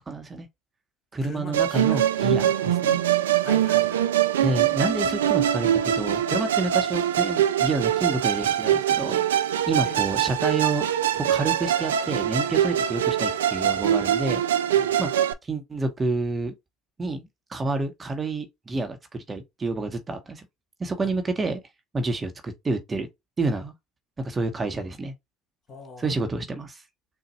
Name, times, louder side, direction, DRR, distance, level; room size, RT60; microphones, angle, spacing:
voice 1, 0.1-0.5 1.1-3.0 4.4-9.2 9.7-10.9 11.1-14.4 15.0-16.5 17.0-20.5 20.8-21.6 21.9-23.1 23.4-23.7 24.2-25.1 26.0-26.8, right 3 dB, 25° right, 0.9 m, -29 dB
voice 2, 1.2-2.0 3.3-4.1 9.8-10.3 14.7-14.9 21.0-21.1 25.7-26.2, left 3 dB, 45° left, 2.1 m, -41 dB
Musical instrument, 1.5-15.3, right 10 dB, 85° right, 0.3 m, -23 dB
4.0 x 2.2 x 4.1 m
hypercardioid pair, 70°, 0 cm